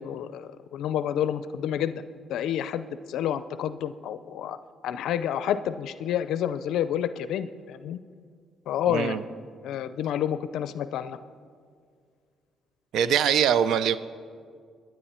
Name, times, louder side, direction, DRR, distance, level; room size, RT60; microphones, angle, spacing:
voice 1, 0.0-2.0 2.3-4.6 4.8-8.0 8.7-9.2 9.6-11.2, left 10 dB, 80° left, 13 dB, 0.4 m, -29 dB
voice 2, 8.9-9.2 12.9-14.0, right 8 dB, 80° right, 14 dB, 0.5 m, -22 dB
23.5 x 10.5 x 4.3 m, 2.1 s
cardioid pair, 90°, 0 cm